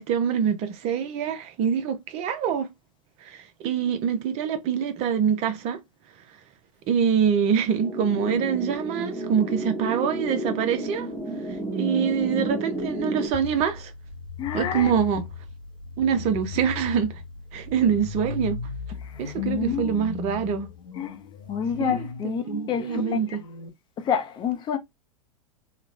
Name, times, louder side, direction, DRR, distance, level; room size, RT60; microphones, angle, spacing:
voice 1, 0.0-2.7 3.2-5.8 6.9-11.1 11.7-13.9 14.5-15.3 16.0-17.2 17.5-18.6 19.2-20.7 21.8-22.1 22.5-23.4, right 7 dB, 35° right, 0.6 m, -25 dB
sound 1, 7.8-13.3, right 2 dB, ahead, 1.1 m, -31 dB
sound 2, 13.3-23.7, left 6 dB, 75° left, 0.6 m, -37 dB
voice 2, 14.4-14.9 19.0-20.1 21.0-21.2 21.5-23.2 24.0-24.8, left 8 dB, 25° left, 0.5 m, -28 dB
2.9 x 2.1 x 2.5 m
figure-of-eight pair, 95°, 19 cm